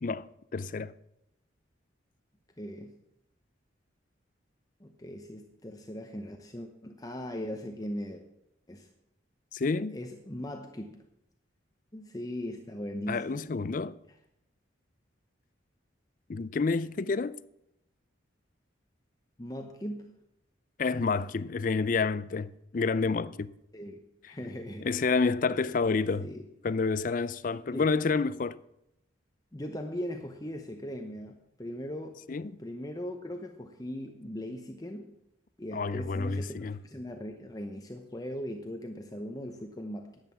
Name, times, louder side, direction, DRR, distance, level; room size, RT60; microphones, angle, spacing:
voice 1, 0.0-0.9 9.5-10.0 13.1-14.0 16.3-17.3 20.8-23.5 24.8-26.3 26.6-28.6 32.3-32.5 35.7-36.8, left 4 dB, 45° left, 0.4 m, -29 dB
voice 2, 2.6-2.9 4.8-8.2 8.7-8.9 9.9-11.0 11.9-13.5 19.4-20.2 23.7-24.8 26.2-26.5 27.7-27.9 29.5-32.2 32.6-35.2 35.6-40.2, equal, 20° left, 0.8 m, -39 dB
11.0 x 8.2 x 7.1 m
head